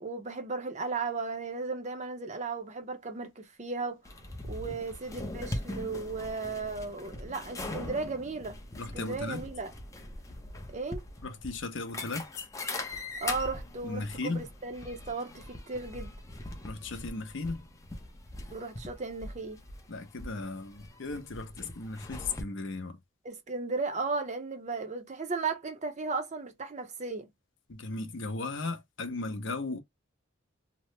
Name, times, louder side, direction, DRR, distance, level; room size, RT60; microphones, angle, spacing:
voice 1, 0.0-4.0 4.5-8.6 8.9-9.7 10.7-11.0 13.2-16.1 18.5-19.6 23.2-27.3, right 4 dB, 35° right, 0.6 m, -35 dB
sound 1, 4.1-22.4, left 2 dB, 15° left, 0.5 m, -41 dB
voice 2, 8.8-9.5 11.2-12.5 13.8-14.5 16.6-17.6 19.9-23.0 27.7-29.8, left 3 dB, 60° left, 0.7 m, -36 dB
2.9 x 2.0 x 3.0 m
head